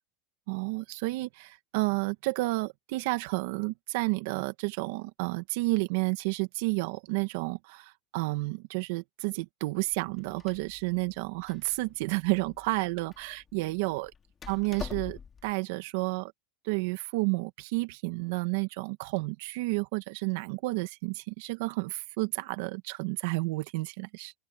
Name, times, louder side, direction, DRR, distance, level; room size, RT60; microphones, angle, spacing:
voice 1, 0.5-14.1 14.5-16.3 16.6-24.3, right 24 dB, 70° right, 1.7 m, -31 dB
Door, 9.9-15.5, left 6 dB, 25° left, 2.3 m, -46 dB
open air
supercardioid pair, 120°, 0 cm